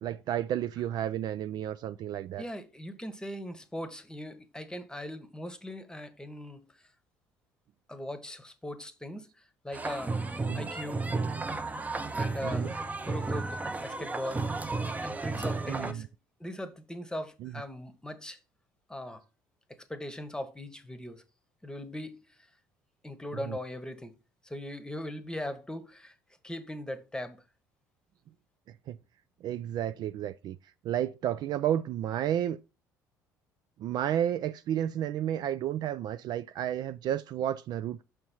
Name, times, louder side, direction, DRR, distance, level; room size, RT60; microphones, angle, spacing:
voice 1, 0.0-2.4 10.5-10.7 12.4-12.8 15.7-16.1 17.4-17.5 23.4-23.6 28.9-29.0 29.4-30.6 30.8-32.6 33.8-38.0, right 11 dB, 45° right, 0.3 m, -32 dB
voice 2, 2.4-6.7 7.9-9.3 9.6-10.2 10.5-11.1 12.1-12.7 13.0-14.4 15.0-16.1 16.4-18.4 18.9-19.2 19.7-21.2 21.6-22.2 23.0-24.1 24.4-26.1 26.4-27.4, left 1 dB, 10° left, 1.1 m, -39 dB
sound 1, 9.7-15.9, right 3 dB, 15° right, 0.7 m, -33 dB
6.4 x 4.4 x 4.2 m
figure-of-eight pair, 55°, 10 cm